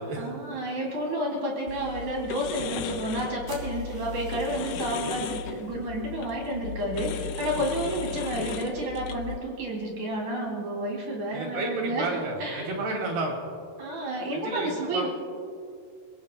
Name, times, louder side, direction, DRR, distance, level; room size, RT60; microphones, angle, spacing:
voice 1, 0.2-12.7 13.8-15.1, right 1 dB, 55° right, -1 dB, 4.2 m, -30 dB
sound 1, 1.7-9.4, left 8 dB, 80° left, 1.9 m, -36 dB
sound 2, 3.4-5.6, left 1 dB, 15° left, 3.1 m, -49 dB
voice 2, 11.3-13.5 14.3-15.1, right 2 dB, 80° right, 1 dB, 4.4 m, -31 dB
29.5 x 18.0 x 2.3 m, 2.3 s
omnidirectional pair, 4.5 m